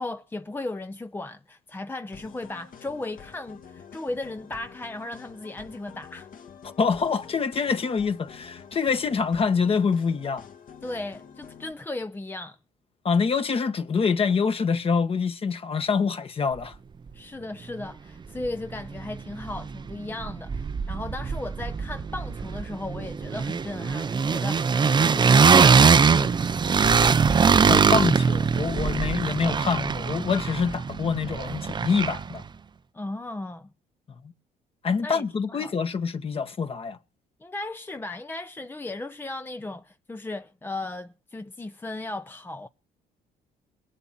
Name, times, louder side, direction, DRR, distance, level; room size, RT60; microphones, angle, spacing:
voice 1, 0.0-6.3 10.8-12.6 17.1-26.6 32.9-33.7 35.0-35.9 37.4-42.7, left 2 dB, 10° left, 0.8 m, -36 dB
sound 1, 2.1-11.7, left 7 dB, 55° left, 2.7 m, -47 dB
voice 2, 6.8-10.4 13.0-16.7 27.7-32.4 34.8-37.0, left 5 dB, 35° left, 1.6 m, -25 dB
sound 2, 18.4-18.5 18.8-19.9 20.2-32.4, right 5 dB, 25° right, 0.7 m, -22 dB
22.0 x 11.0 x 4.3 m
cardioid pair, 110°, 17 cm